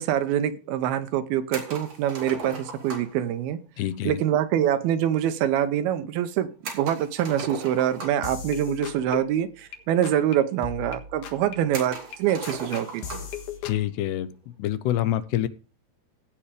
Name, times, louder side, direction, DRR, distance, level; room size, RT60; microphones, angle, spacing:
voice 1, 0.0-3.6 4.0-6.5 6.7-13.2, right 10 dB, 75° right, 11 dB, 2.5 m, -25 dB
sound 1, 1.5-3.2 6.6-8.4 9.4-9.5 9.8-9.9 10.7-10.8 11.7-13.4, right 4 dB, 45° right, 3.4 m, -37 dB
voice 2, 3.8-4.2 13.6-14.3 14.6-15.5, left 12 dB, 85° left, 14 dB, 2.9 m, -26 dB
sound 2, 8.2-9.8 10.0-10.4 10.6-13.9, left 8 dB, 60° left, 2.7 m, -38 dB
16.5 x 5.7 x 5.0 m, 0.35 s
omnidirectional pair, 4.7 m